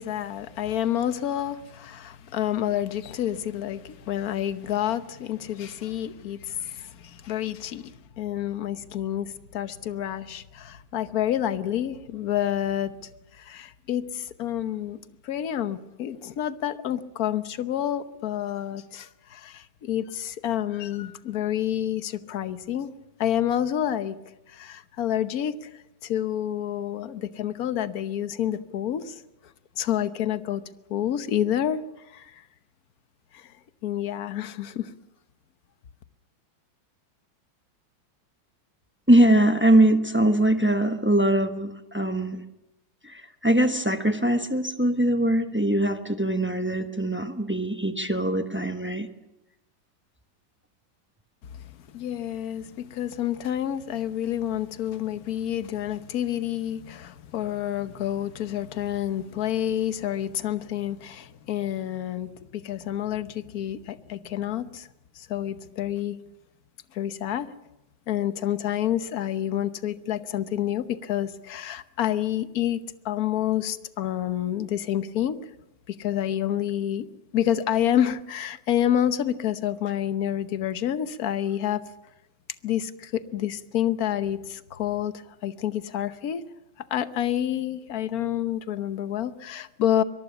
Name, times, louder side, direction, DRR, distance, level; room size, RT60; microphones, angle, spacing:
voice 1, 0.0-12.9 13.3-22.9 23.2-24.2 24.5-25.7 26.0-29.2 29.8-30.6 30.9-31.8 32.1-32.4 33.3-33.5 33.8-34.9 51.5-64.9 65.2-66.2 66.9-67.5 68.1-75.4 75.9-77.1 77.3-81.8 82.6-86.4 86.9-90.0, left 11 dB, 55° left, 1.3 m, -28 dB
voice 2, 39.1-42.4 43.0-49.1, right 1 dB, 10° right, 0.7 m, -22 dB
23.5 x 22.0 x 7.0 m
omnidirectional pair, 2.1 m